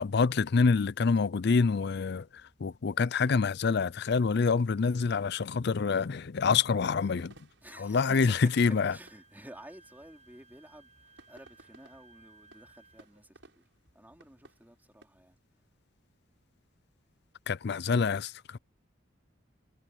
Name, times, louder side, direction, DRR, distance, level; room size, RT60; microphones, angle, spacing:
voice 1, 0.0-2.3 2.6-7.3 7.8-8.9 17.5-18.6, left 5 dB, 60° left, 0.5 m, -26 dB
sound 1, 1.7-15.1, right 2 dB, 75° right, 7.7 m, -62 dB
voice 2, 7.6-8.4 8.7-13.7 13.9-15.4, right 1 dB, 10° right, 3.2 m, -52 dB
Wind instrument woodwind instrument, 7.9-13.2, right 3 dB, 35° right, 6.8 m, -59 dB
head